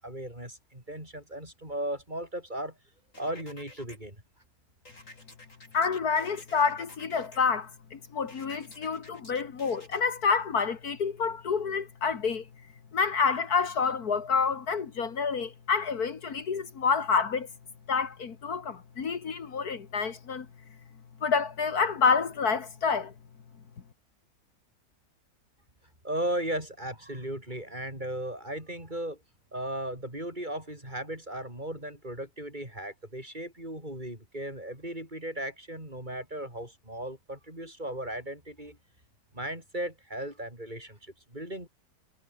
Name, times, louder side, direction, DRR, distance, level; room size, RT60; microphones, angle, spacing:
voice 1, 0.0-2.7 3.2-4.2 26.0-29.2 29.5-38.8 39.3-41.7, right 1 dB, 25° right, 8.1 m, -36 dB
sound 1, 3.1-4.0 4.8-7.4 8.3-10.0, left 2 dB, 50° left, 7.2 m, -51 dB
voice 2, 5.7-12.4 12.9-17.5 17.9-20.5 21.2-23.1, left 5 dB, 65° left, 2.2 m, -28 dB
omnidirectional pair, 1.7 m